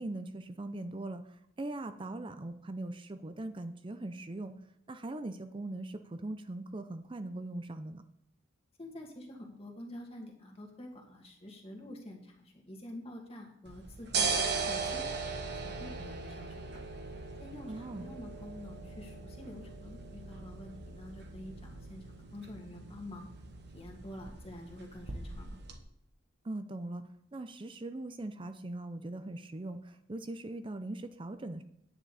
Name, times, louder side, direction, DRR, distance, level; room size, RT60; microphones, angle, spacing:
voice 1, 0.0-4.5 4.9-8.0 17.7-18.1 26.4-27.0 27.3-31.6, right 2 dB, 25° right, 9 dB, 0.5 m, -40 dB
voice 2, 8.8-15.1 15.5-16.8 17.4-23.3 23.7-25.6, left 1 dB, 30° left, 1 dB, 1.9 m, -48 dB
sound 1, 13.7-25.8, right 4 dB, 55° right, 1.3 m, -39 dB
9.9 x 9.2 x 4.2 m, 0.74 s
head